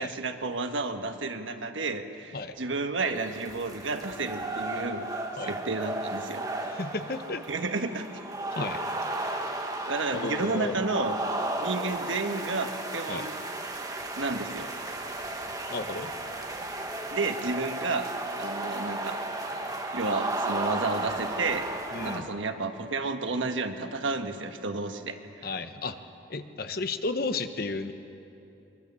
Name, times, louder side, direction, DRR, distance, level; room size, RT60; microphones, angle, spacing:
voice 1, 0.0-5.1 5.4-6.4 7.5-8.0 9.8-11.2 11.6-13.4 14.2-14.7 17.1-19.2 19.9-21.7 22.0-25.5, right 3 dB, 85° right, 6 dB, 1.4 m, -31 dB
sound 1, 3.0-22.2, right 2 dB, 20° right, 1.5 m, -34 dB
voice 2, 6.6-7.4 8.5-8.8 9.1-9.3 10.1-10.8 13.1-13.3 15.7-16.1 21.9-22.3 25.4-26.0 26.3-27.9, left 3 dB, 50° left, 9 dB, 1.0 m, -33 dB
23.0 x 22.0 x 7.0 m, 2.8 s
head